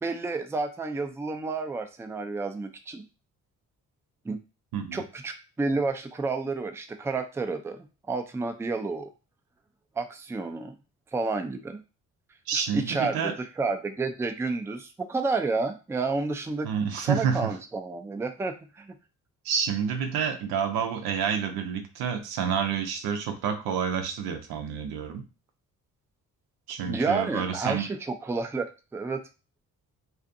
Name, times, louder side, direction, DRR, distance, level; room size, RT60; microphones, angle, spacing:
voice 1, 0.0-3.0 4.2-4.4 4.9-9.1 10.0-10.8 11.1-11.8 12.5-16.7 17.0-18.9 26.9-29.2, right 3 dB, 10° right, 6 dB, 0.3 m, -30 dB
voice 2, 4.7-5.0 12.5-13.4 16.6-17.5 19.4-25.2 26.7-27.9, right 7 dB, 90° right, 6 dB, 0.6 m, -29 dB
2.5 x 2.5 x 2.5 m, 0.31 s
supercardioid pair, 60°, 37 cm